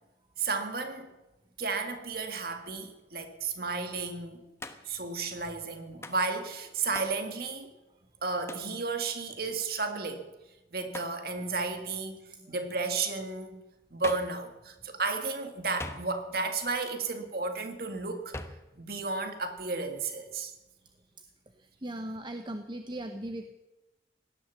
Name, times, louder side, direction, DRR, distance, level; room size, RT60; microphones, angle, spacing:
voice 1, 0.4-1.1 1.6-4.4 4.9-7.7 8.2-10.3 10.7-12.2 12.5-13.6 13.9-18.3 18.8-20.5, right 4 dB, 55° right, 6 dB, 1.8 m, -33 dB
Hands, 4.6-5.0 6.0-6.3 6.9-7.2 8.5-8.7 10.9-11.2 14.0-14.4 15.8-16.4 18.3-18.7, left 2 dB, 15° left, 0.9 m, -41 dB
voice 2, 21.8-23.5, right 1 dB, 25° right, 7 dB, 0.8 m, -38 dB
17.5 x 11.5 x 7.2 m, 1.0 s
head